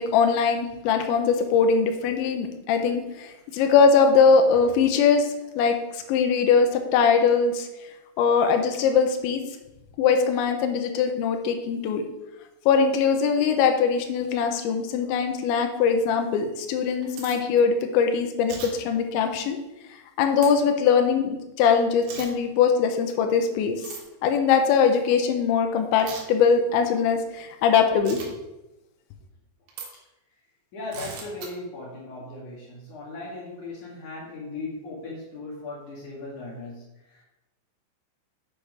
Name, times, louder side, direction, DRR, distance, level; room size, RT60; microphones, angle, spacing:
voice 1, 0.0-5.3 5.6-7.7 8.2-9.4 10.0-12.0 12.7-19.6 20.2-23.8 24.2-28.2, left 6 dB, 80° left, 5 dB, 3.1 m, -21 dB
sound 1, 16.8-17.4 18.5-18.7 20.4-20.5 22.0-22.3 23.8-24.0 26.0-26.2 28.1-28.3 29.7-29.9 30.9-31.5, right 5 dB, 85° right, 4.2 m, -38 dB
voice 2, 30.7-37.2, left 2 dB, 55° left, -3 dB, 2.3 m, -38 dB
8.6 x 5.0 x 5.9 m, 0.97 s
omnidirectional pair, 5.5 m